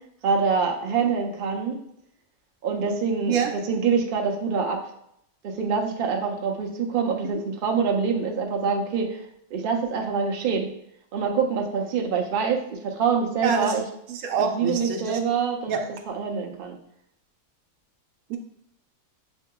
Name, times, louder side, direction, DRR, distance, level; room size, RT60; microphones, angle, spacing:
voice 1, 0.2-1.8 2.6-4.8 5.4-9.2 9.5-10.7 11.1-13.8 14.4-15.7 16.1-16.8, right 5 dB, 55° right, 1 dB, 0.5 m, -25 dB
voice 2, 13.4-13.8 14.1-15.2 15.7-15.8 18.3-18.4, right 6 dB, 80° right, 4 dB, 1.0 m, -25 dB
6.4 x 2.8 x 2.2 m, 0.75 s
omnidirectional pair, 1.5 m